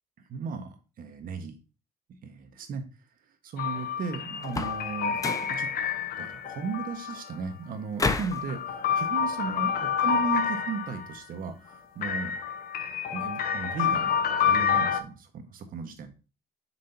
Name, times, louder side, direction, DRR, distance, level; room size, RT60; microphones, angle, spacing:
voice 1, 0.3-1.5 2.2-2.8 3.4-5.2 5.6-5.7 6.2-8.6 8.9-12.4 13.1-14.1 14.4-16.1, right 5 dB, 55° right, 6 dB, 1.6 m, -35 dB
sound 1, 3.6-7.4 8.1-11.2 12.0-15.0, left 7 dB, 60° left, 1.0 m, -28 dB
sound 2, 4.4-4.9 5.2-5.6 8.0-8.4, left 3 dB, 20° left, 0.8 m, -29 dB
7.5 x 6.2 x 2.9 m, 0.33 s
cardioid pair, 110°, 17 cm